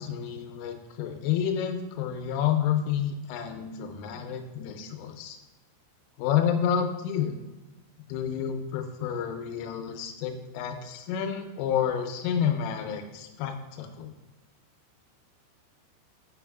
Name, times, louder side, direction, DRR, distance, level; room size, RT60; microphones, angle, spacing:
voice 1, 0.0-5.4 6.2-7.3 8.1-14.1, left 8 dB, 90° left, 6 dB, 3.2 m, -29 dB
8.8 x 6.2 x 2.3 m, 1.1 s
omnidirectional pair, 5.8 m